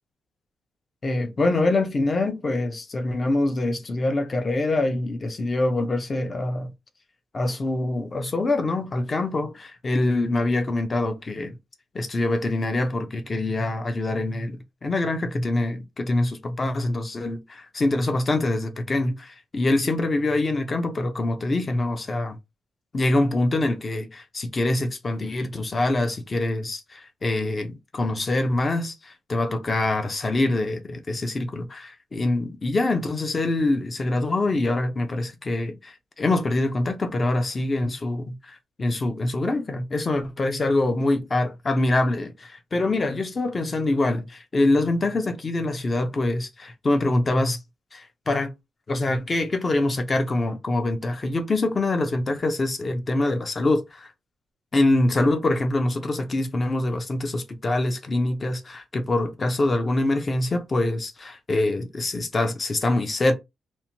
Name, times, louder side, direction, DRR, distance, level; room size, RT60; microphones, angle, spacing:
voice 1, 1.0-6.7 7.3-11.6 11.9-22.4 22.9-47.6 47.9-48.5 48.9-54.1 54.7-63.3, left 2 dB, 25° left, 0.4 m, -25 dB
2.8 x 2.1 x 2.8 m
wide cardioid pair, 175°, 0 cm